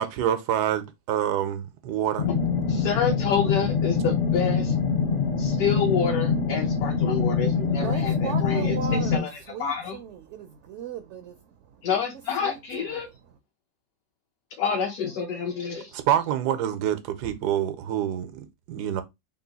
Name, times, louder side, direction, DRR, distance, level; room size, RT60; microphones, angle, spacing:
voice 1, 0.0-2.3 15.9-19.0, right 10 dB, 90° right, 1.2 m, -26 dB
sound 1, 2.2-9.2, left 5 dB, 55° left, 0.7 m, -24 dB
voice 2, 2.7-4.7 5.4-9.3 9.6-10.0 11.8-13.1 14.6-15.9, left 6 dB, 70° left, 1.2 m, -28 dB
voice 3, 7.8-11.9 12.4-13.1, right 8 dB, 70° right, 0.7 m, -38 dB
3.7 x 2.4 x 3.9 m
omnidirectional pair, 1.7 m